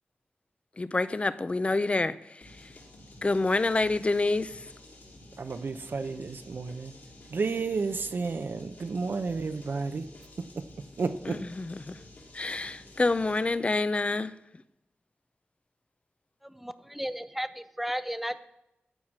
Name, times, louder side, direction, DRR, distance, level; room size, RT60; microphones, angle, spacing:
voice 1, 0.8-2.7 3.2-4.7 11.3-12.0 12.3-14.3, left 3 dB, 35° left, 0.6 m, -28 dB
sound 1, 2.4-13.6, left 2 dB, 70° left, 5.1 m, -51 dB
voice 2, 5.4-6.9 7.3-10.1 10.5-10.7 11.0-11.4, right 4 dB, 70° right, 0.8 m, -31 dB
voice 3, 16.4-18.4, equal, 5° right, 0.7 m, -34 dB
14.5 x 4.9 x 7.4 m
wide cardioid pair, 80°, 4 cm